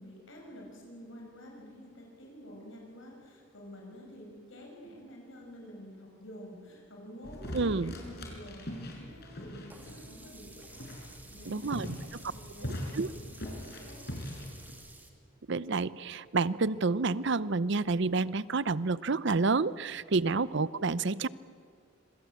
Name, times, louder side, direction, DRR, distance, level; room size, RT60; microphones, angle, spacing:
voice 1, 0.0-14.1, equal, 70° left, 0 dB, 6.1 m, -49 dB
sound 1, 7.2-14.7, equal, 55° left, 5.7 m, -42 dB
voice 2, 7.5-7.9 11.5-12.0 12.9-13.1 15.5-21.3, right 3 dB, 60° right, 18 dB, 0.7 m, -29 dB
Sink (filling or washing), 9.7-15.1, right 2 dB, 10° right, 2.7 m, -53 dB
26.0 x 25.0 x 8.5 m, 2.2 s
head